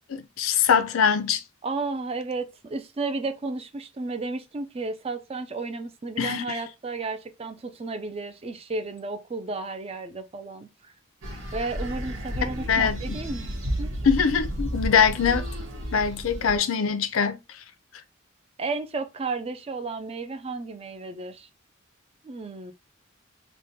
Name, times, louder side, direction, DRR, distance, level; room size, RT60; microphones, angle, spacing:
voice 1, 0.1-1.4 6.2-6.4 12.7-13.0 14.0-15.4 15.9-17.4, left 6 dB, 85° left, 0.5 m, -22 dB
voice 2, 1.6-10.7 11.5-13.5 13.8-13.9 18.6-21.5 22.2-22.7, right 3 dB, 30° right, 0.4 m, -33 dB
sound 1, 11.2-16.6, equal, 80° right, 1.2 m, -32 dB
3.3 x 2.2 x 4.0 m
head